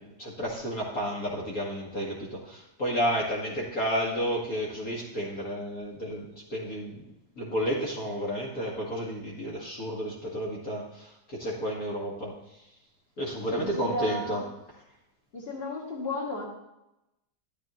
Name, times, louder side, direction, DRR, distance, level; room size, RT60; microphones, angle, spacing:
voice 1, 0.0-7.1 7.4-12.3 13.2-14.4, equal, 55° left, -4 dB, 2.3 m, -31 dB
voice 2, 13.5-14.4 15.3-16.5, left 1 dB, 35° left, -2 dB, 2.5 m, -33 dB
13.0 x 12.5 x 3.1 m, 0.89 s
omnidirectional pair, 1.9 m